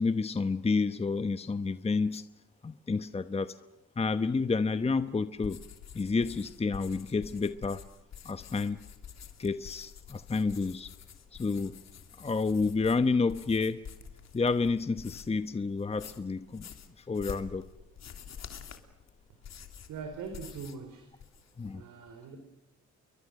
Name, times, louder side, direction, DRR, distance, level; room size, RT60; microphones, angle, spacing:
voice 1, 0.0-2.2 2.6-3.5 4.0-5.6 5.9-7.8 8.2-8.8 9.4-10.9 11.3-11.8 12.2-13.8 14.3-16.7 17.0-17.6 21.6-21.8, left 4 dB, 20° left, 11 dB, 1.0 m, -29 dB
sound 1, 5.4-15.4 15.8-20.9 21.1-21.7, left 7 dB, 60° left, 3.0 m, -48 dB
voice 2, 19.9-21.1 21.7-22.4, right 5 dB, 80° right, 5 dB, 4.2 m, -42 dB
29.5 x 22.5 x 6.5 m, 0.95 s
cardioid pair, 90°, 30 cm